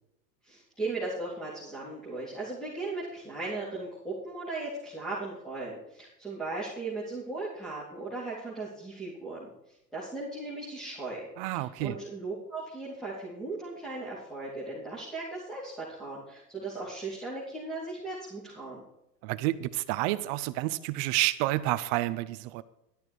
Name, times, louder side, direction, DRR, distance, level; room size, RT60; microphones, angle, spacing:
voice 1, 0.4-9.5 9.9-11.3 11.5-18.8, right 3 dB, ahead, -8 dB, 3.6 m, -37 dB
voice 2, 11.4-11.9 19.2-22.6, right 17 dB, 30° right, 15 dB, 0.6 m, -29 dB
12.0 x 12.0 x 4.7 m, 0.84 s
hypercardioid pair, 125°, 50 cm